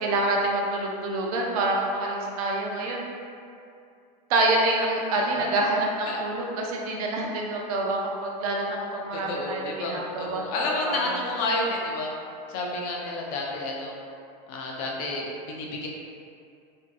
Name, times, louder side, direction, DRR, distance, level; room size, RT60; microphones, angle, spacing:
voice 1, 0.0-3.1 4.3-10.4 10.8-11.2, right 2 dB, 65° right, -1 dB, 0.5 m, -27 dB
voice 2, 9.1-12.1 12.5-14.0 14.5-15.9, left 2 dB, 40° left, -1 dB, 0.4 m, -30 dB
2.6 x 2.4 x 2.2 m, 2.5 s
supercardioid pair, 150°, 21 cm